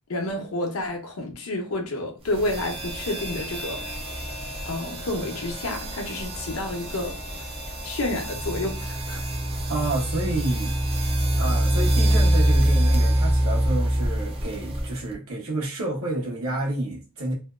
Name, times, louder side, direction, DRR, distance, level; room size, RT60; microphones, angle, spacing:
voice 1, 0.1-3.8 4.6-7.5 7.8-9.2, left 1 dB, 70° left, 0.7 m, -30 dB
sound 1, 2.3-15.1, right 1 dB, 25° right, 0.5 m, -25 dB
voice 2, 9.7-10.8 11.4-17.3, right 2 dB, 75° right, 1.0 m, -29 dB
2.6 x 2.2 x 2.3 m
head